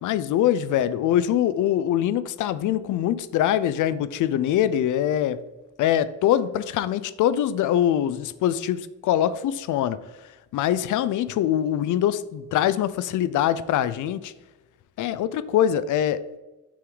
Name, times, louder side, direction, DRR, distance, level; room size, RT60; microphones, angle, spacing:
voice 1, 0.0-5.4 5.8-10.0 10.5-14.3 15.0-16.4, left 11 dB, 80° left, 16 dB, 0.5 m, -23 dB
7.8 x 6.2 x 3.9 m, 1.1 s
cardioid pair, 165°, 30 cm